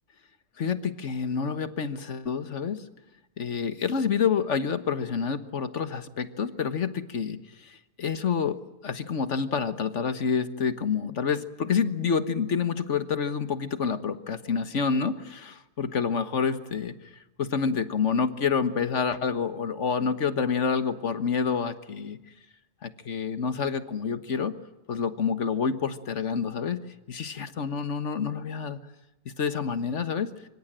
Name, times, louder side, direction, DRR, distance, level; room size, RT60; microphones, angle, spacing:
voice 1, 0.6-2.8 3.4-8.6 8.8-16.9 17.4-22.2 22.8-24.5 24.9-26.8 27.1-28.8 29.2-30.3, left 6 dB, 50° left, 11 dB, 1.6 m, -28 dB
25.5 x 24.5 x 7.6 m, 0.99 s
omnidirectional pair, 1.7 m